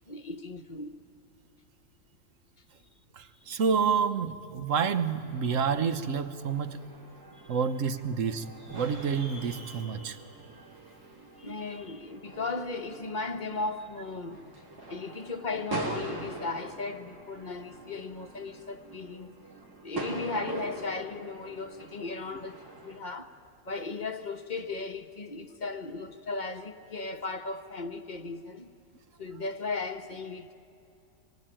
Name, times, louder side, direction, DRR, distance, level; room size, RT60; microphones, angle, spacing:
voice 1, 0.1-1.0 11.4-14.4 14.9-19.4 19.8-23.3 23.6-28.7 29.2-30.5, left 3 dB, 35° left, 1.0 m, -36 dB
voice 2, 3.1-6.8 7.5-8.5 8.7-10.2, right 6 dB, 55° right, 1.3 m, -28 dB
sound 1, 5.3-23.0, right 2 dB, 85° right, 3.7 m, -43 dB
25.5 x 23.5 x 9.0 m
omnidirectional pair, 1.7 m